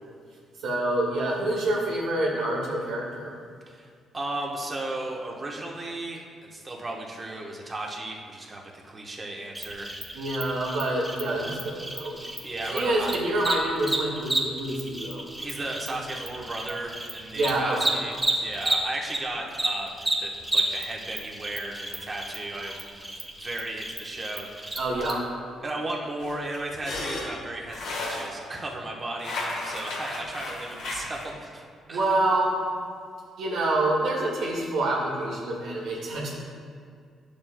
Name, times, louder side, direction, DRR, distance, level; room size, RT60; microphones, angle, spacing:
voice 1, 0.6-3.3 10.1-12.2 12.6-15.3 17.3-18.0 24.8-25.2 31.9-32.7 33.4-36.3, right 1 dB, 80° right, -4 dB, 1.9 m, -27 dB
voice 2, 3.7-9.9 12.2-13.1 15.4-18.1 18.4-24.8 25.6-31.6 31.9-32.1, right 2 dB, 30° right, -1 dB, 1.2 m, -35 dB
Cricket, 9.5-19.2 19.5-25.1, right 1 dB, 10° right, 1.2 m, -31 dB
sound 1, 26.2-28.7 29.2-31.3, left 2 dB, 75° left, 1.4 m, -34 dB
10.5 x 6.9 x 2.3 m, 2.2 s
cardioid pair, 90°, 0 cm